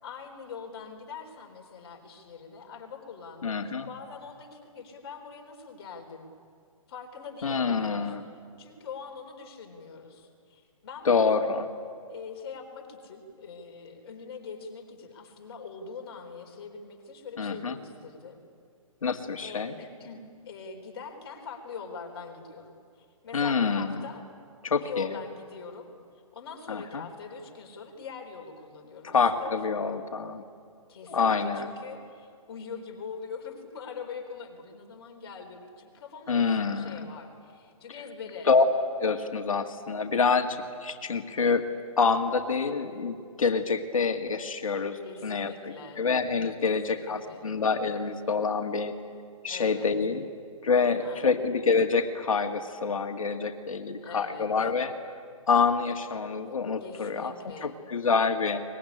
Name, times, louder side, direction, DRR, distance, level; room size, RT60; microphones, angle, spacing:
voice 1, 0.0-6.3 6.9-8.2 8.6-11.5 12.1-18.4 19.4-24.2 24.8-25.9 26.3-29.6 30.9-38.5 45.0-46.1 46.6-47.5 49.5-50.0 51.0-51.2 54.0-54.5 56.8-57.7, left 5 dB, 45° left, 4 dB, 4.0 m, -43 dB
voice 2, 3.4-3.9 7.4-8.2 11.1-11.7 17.4-17.8 19.0-19.7 23.3-24.0 24.6-25.1 26.7-27.0 29.0-30.4 31.1-31.7 36.3-37.1 38.4-38.7 39.0-41.7 42.0-48.9 49.4-50.3 50.6-54.9 55.5-57.3 57.6-58.6, left 5 dB, 70° left, 6 dB, 2.0 m, -27 dB
23.0 x 21.0 x 10.0 m, 2.3 s
hypercardioid pair, 145°, 18 cm